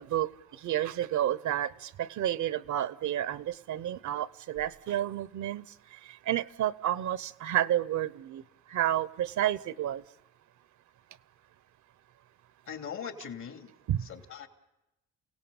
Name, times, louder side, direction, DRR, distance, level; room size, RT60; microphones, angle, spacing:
voice 1, 0.0-8.4 8.7-10.0 13.9-14.1, right 12 dB, 70° right, 0.8 m, -31 dB
voice 2, 12.7-13.7 14.0-14.5, left 7 dB, 70° left, 3.2 m, -40 dB
29.0 x 17.5 x 7.2 m
cardioid pair, 90°, 30 cm